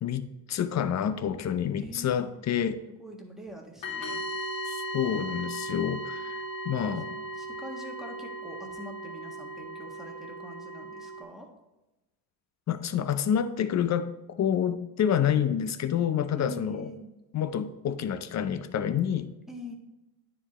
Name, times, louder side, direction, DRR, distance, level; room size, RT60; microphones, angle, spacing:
voice 1, 0.0-2.8 4.7-6.4 6.6-7.1 12.7-14.1 14.4-16.9 17.3-19.3, left 9 dB, 35° left, 12 dB, 0.6 m, -28 dB
voice 2, 1.8-2.3 3.0-4.2 6.8-7.0 7.3-11.5 16.3-17.1 19.5-19.7, left 1 dB, ahead, -1 dB, 1.6 m, -44 dB
sound 1, 3.8-11.2, right 1 dB, 65° left, 2.6 m, -37 dB
9.7 x 4.9 x 3.0 m, 1.0 s
supercardioid pair, 75°, 48 cm